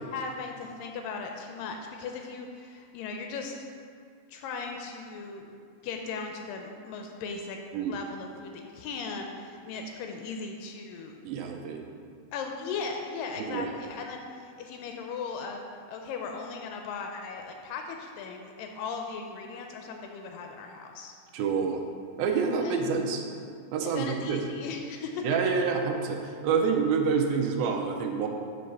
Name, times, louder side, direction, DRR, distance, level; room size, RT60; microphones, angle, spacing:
voice 1, 0.1-3.6 4.3-5.5 5.8-7.6 7.9-11.2 12.3-21.2 22.6-22.8 23.8-25.3, left 5 dB, 80° left, 3 dB, 2.1 m, -37 dB
voice 2, 11.3-11.8 13.4-13.7 21.3-21.8 22.2-23.2 23.7-24.4 25.2-28.3, right 5 dB, 80° right, 3 dB, 2.5 m, -27 dB
5.6 x 5.4 x 6.5 m, 2.3 s
omnidirectional pair, 4.2 m